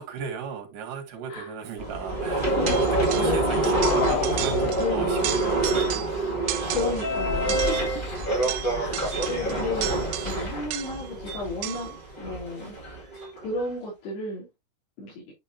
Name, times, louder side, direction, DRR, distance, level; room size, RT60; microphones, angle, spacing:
voice 1, 0.0-2.9 3.1-6.5, right 6 dB, 55° right, 3.3 m, -35 dB
sound 1, 1.8-13.6, right 2 dB, 25° left, 1.0 m, -27 dB
voice 2, 2.5-2.8 3.2-3.4 3.6-3.9 4.8-5.3 6.7-7.9 8.7-10.0 10.3-12.8 13.4-14.5 15.0-15.3, left 3 dB, 70° left, 5.3 m, -32 dB
sound 2, 2.7-3.4 3.6-4.9 5.2-6.2 6.5-7.1 7.5-11.1 11.6-12.0, right 14 dB, 85° right, 2.1 m, -34 dB
sound 3, 3.0-6.0, left 14 dB, 85° left, 2.7 m, -32 dB
9.8 x 5.5 x 2.7 m
omnidirectional pair, 4.9 m